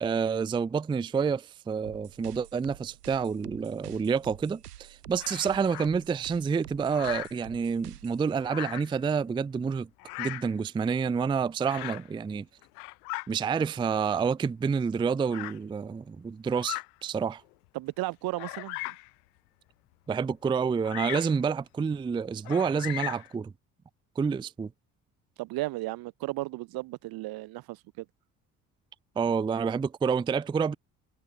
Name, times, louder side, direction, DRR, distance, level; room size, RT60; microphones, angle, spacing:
voice 1, 0.0-9.9 10.2-12.5 13.3-17.4 20.1-23.5 24.2-24.7 29.2-30.8, right 6 dB, 10° right, 0.4 m, -28 dB
sound 1, 1.8-8.2, right 13 dB, 85° right, 2.9 m, -49 dB
Bird vocalization bird call bird song, 5.2-5.9 6.9-7.4 8.4-9.0 10.0-10.5 11.6-12.1 12.6-13.3 14.1-14.2 15.3-15.6 16.5-16.9 17.5-17.6 18.4-19.1 20.8-21.4 22.4-23.3, left 28 dB, 75° left, 1.0 m, -37 dB
voice 2, 17.7-19.0 25.4-28.1, right 20 dB, 55° right, 0.6 m, -35 dB
hypercardioid pair, 55°, 45 cm